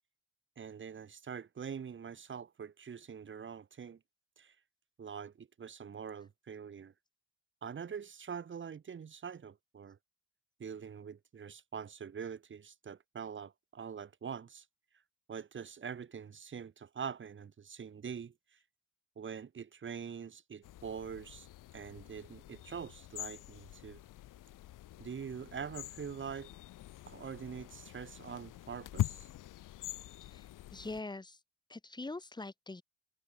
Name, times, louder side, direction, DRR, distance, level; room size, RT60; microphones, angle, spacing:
voice 1, 0.6-4.0 4.4-4.5 5.0-6.9 7.6-10.0 10.6-14.6 15.3-18.3 19.2-21.5 21.7-24.0 25.0-26.5 27.0-29.3, right 7 dB, 40° right, 3.0 m, -44 dB
sound 1, 20.6-31.0, left 14 dB, 85° left, 6.9 m, -44 dB
voice 2, 30.2-31.4 31.7-32.8, left 2 dB, 15° left, 3.0 m, -43 dB
cardioid pair, 120°, 31 cm